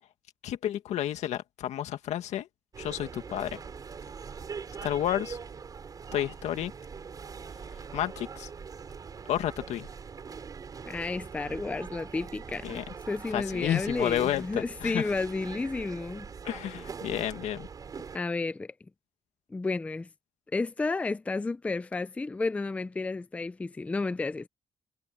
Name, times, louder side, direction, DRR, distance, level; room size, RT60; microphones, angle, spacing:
voice 1, 0.4-2.5 2.8-3.6 4.8-5.4 6.1-6.7 7.9-8.5 9.3-9.9 12.6-12.8 13.3-15.1 16.4-17.7, left 11 dB, 90° left, 2.0 m, -31 dB
sound 1, 2.7-18.2, right 6 dB, 35° right, 6.6 m, -42 dB
voice 2, 10.9-16.3 18.1-18.7 19.5-20.1 20.5-24.5, left 3 dB, 10° left, 0.4 m, -32 dB
cardioid pair, 170°, 11 cm